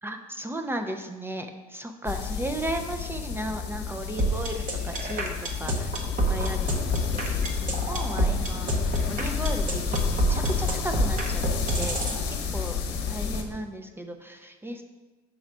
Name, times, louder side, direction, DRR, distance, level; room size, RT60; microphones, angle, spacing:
voice 1, 0.0-6.7 7.1-11.4 11.7-12.8 13.1-14.8, right 1 dB, 10° right, 5 dB, 0.5 m, -35 dB
sound 1, 2.1-13.4, left 6 dB, 55° left, 0.9 m, -30 dB
sound 2, 4.2-12.2, right 2 dB, 40° right, 1.0 m, -26 dB
6.0 x 3.1 x 5.1 m, 1.2 s
hypercardioid pair, 80°, 21 cm